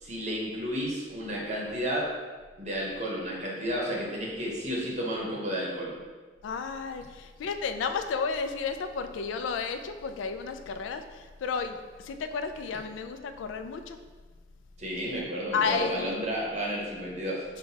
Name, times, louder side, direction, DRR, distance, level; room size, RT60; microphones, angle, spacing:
voice 1, 0.0-2.1 2.6-5.9 14.8-17.4, equal, 35° right, -3 dB, 0.7 m, -32 dB
voice 2, 6.4-11.0 11.4-11.8 12.0-14.0 15.5-16.1, left 5 dB, 85° left, 8 dB, 0.3 m, -32 dB
5.5 x 2.2 x 2.7 m, 1.4 s
head